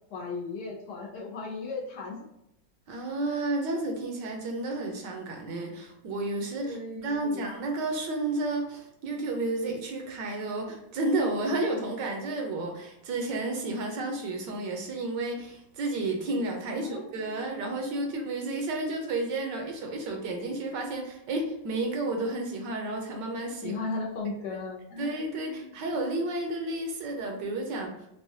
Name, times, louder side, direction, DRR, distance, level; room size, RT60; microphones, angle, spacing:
voice 1, 0.1-2.3 6.6-7.5 16.7-18.1 23.6-25.8, left 3 dB, 70° left, -2 dB, 1.1 m, -37 dB
voice 2, 2.9-23.8 25.0-28.0, right 2 dB, 75° right, 2 dB, 1.3 m, -31 dB
4.7 x 2.2 x 2.7 m, 0.83 s
omnidirectional pair, 2.0 m